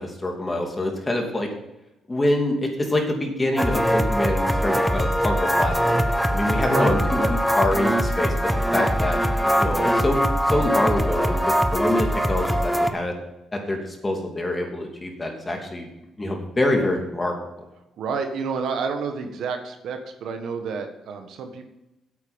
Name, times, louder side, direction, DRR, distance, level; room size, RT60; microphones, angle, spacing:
voice 1, 0.0-1.5 2.1-8.3 8.7-9.2 9.6-10.2 10.5-13.1 13.5-15.9 16.2-17.6, left 1 dB, 20° left, 2 dB, 2.7 m, -25 dB
sound 1, 3.6-12.9, equal, ahead, 1.0 m, -22 dB
voice 2, 6.7-7.3 18.0-21.7, right 5 dB, 75° right, 6 dB, 1.5 m, -30 dB
8.7 x 8.3 x 7.3 m, 0.92 s
cardioid pair, 90°, 0 cm